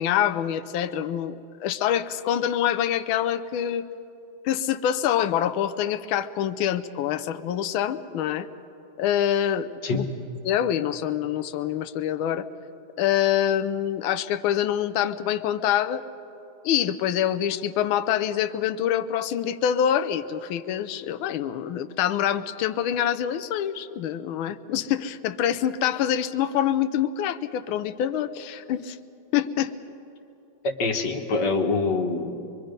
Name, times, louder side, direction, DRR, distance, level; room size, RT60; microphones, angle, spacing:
voice 1, 0.0-3.9 4.4-8.5 9.0-10.1 10.4-12.5 13.0-16.0 16.6-29.0 29.3-29.7, left 10 dB, 80° left, 10 dB, 1.5 m, -25 dB
voice 2, 30.8-32.4, left 3 dB, 55° left, 3 dB, 1.9 m, -25 dB
24.5 x 23.0 x 5.2 m, 2.8 s
omnidirectional pair, 2.3 m